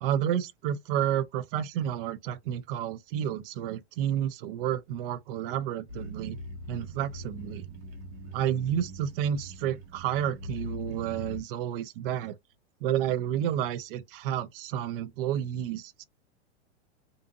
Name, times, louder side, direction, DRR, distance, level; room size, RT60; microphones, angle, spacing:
voice 1, 0.0-6.4 6.7-7.7 8.3-12.4 12.8-16.0, right 10 dB, 55° right, 0.4 m, -30 dB
sound 1, 5.9-11.4, equal, 85° right, 1.1 m, -42 dB
2.6 x 2.5 x 2.5 m
supercardioid pair, 145°, 35 cm